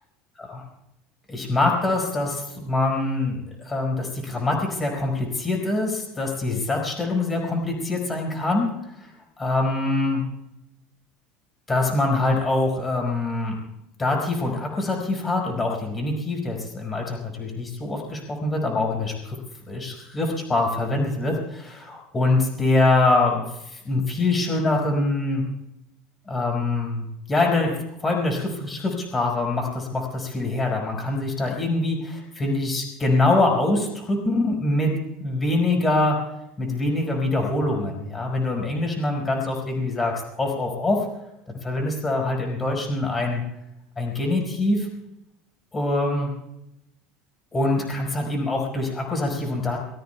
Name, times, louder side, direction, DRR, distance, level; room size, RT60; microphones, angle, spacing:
voice 1, 1.3-9.1 9.4-10.2 11.7-13.6 14.0-19.4 19.7-25.4 26.3-27.7 28.0-34.9 35.2-36.2 36.6-41.1 41.6-43.4 44.0-44.9 45.7-46.3 47.5-49.8, left 2 dB, 20° left, 1 dB, 5.1 m, -24 dB
23.5 x 20.5 x 2.3 m, 0.84 s
supercardioid pair, 105°, 0 cm